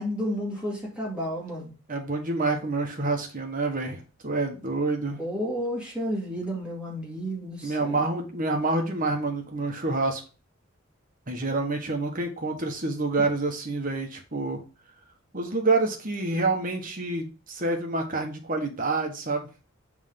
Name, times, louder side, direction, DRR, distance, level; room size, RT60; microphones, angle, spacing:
voice 1, 0.0-1.7 5.2-8.1, equal, 5° right, -4 dB, 2.0 m, -31 dB
voice 2, 1.9-5.2 7.6-10.2 11.3-14.6 15.3-19.5, right 3 dB, 40° right, 3 dB, 1.4 m, -27 dB
7.1 x 3.7 x 3.7 m, 0.32 s
head